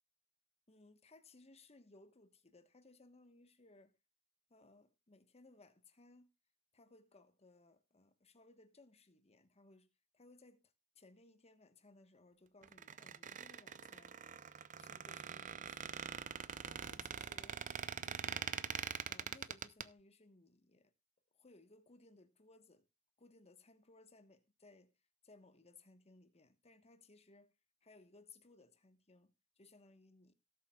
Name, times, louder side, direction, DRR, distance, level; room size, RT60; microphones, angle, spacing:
voice 1, 0.7-4.0 4.5-6.3 6.7-9.9 10.1-14.2 14.8-16.1 16.6-17.6 18.0-18.6 19.1-20.9 21.3-22.9 23.2-24.9 25.2-27.5 27.8-30.3, left 2 dB, 30° left, 1.2 m, -63 dB
Squeak, 12.6-19.8, right 7 dB, 35° right, 0.6 m, -44 dB
18.0 x 7.6 x 2.3 m
head